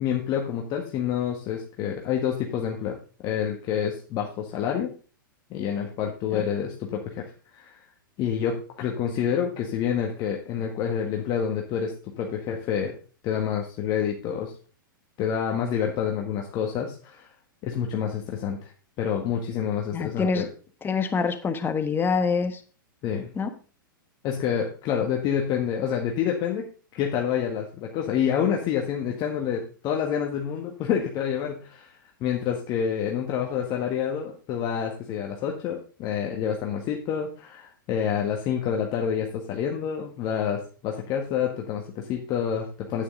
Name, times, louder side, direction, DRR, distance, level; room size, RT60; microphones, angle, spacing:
voice 1, 0.0-3.0 3.2-4.9 5.5-7.3 7.5-7.8 8.2-12.9 13.2-14.5 15.2-17.3 17.6-18.7 19.0-20.5 23.0-23.3 24.2-26.7 27.0-31.9 32.2-43.0, left 8 dB, 35° left, 1 dB, 1.6 m, -28 dB
voice 2, 19.9-20.5 20.8-22.6 23.3-23.5, left 5 dB, 20° left, 8 dB, 1.4 m, -25 dB
9.2 x 8.4 x 3.8 m, 0.38 s
hypercardioid pair, 110°, 11 cm